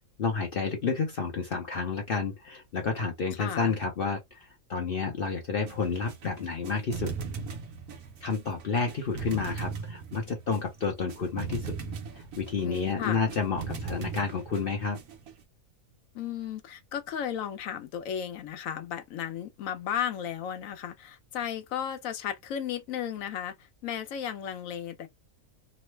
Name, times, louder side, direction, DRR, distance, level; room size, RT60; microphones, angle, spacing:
voice 1, 0.2-7.1 8.2-11.7 12.1-15.0, left 5 dB, 55° left, 0.7 m, -30 dB
voice 2, 3.4-3.7 12.6-13.3 16.1-25.1, left 9 dB, 75° left, 1.0 m, -34 dB
sound 1, 5.6-15.4, right 5 dB, 70° right, 1.1 m, -39 dB
3.0 x 2.0 x 3.1 m
omnidirectional pair, 1.5 m